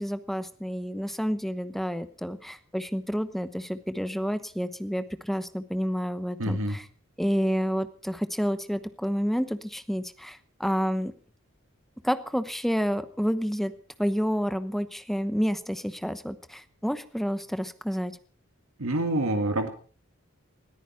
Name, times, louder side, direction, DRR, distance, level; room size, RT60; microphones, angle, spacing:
voice 1, 0.0-6.9 7.2-11.1 12.0-13.7 14.0-18.1, equal, ahead, 11 dB, 0.9 m, -29 dB
voice 2, 6.4-6.8 18.8-19.7, right 1 dB, 85° right, 6 dB, 2.0 m, -26 dB
20.0 x 14.0 x 4.5 m, 0.41 s
head